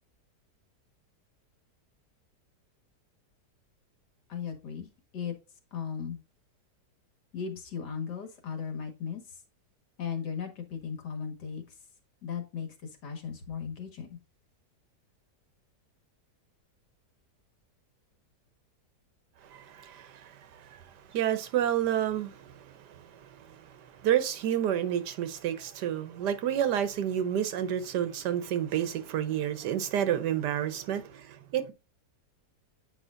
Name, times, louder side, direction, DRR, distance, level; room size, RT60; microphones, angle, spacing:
voice 1, 4.3-4.9 5.1-5.3 5.7-6.2 7.3-9.2 10.0-11.6 12.2-14.2, left 7 dB, 75° left, 2.2 m, -36 dB
voice 2, 19.4-31.7, right 10 dB, 80° right, 1.4 m, -30 dB
8.9 x 5.0 x 2.5 m
omnidirectional pair, 1.8 m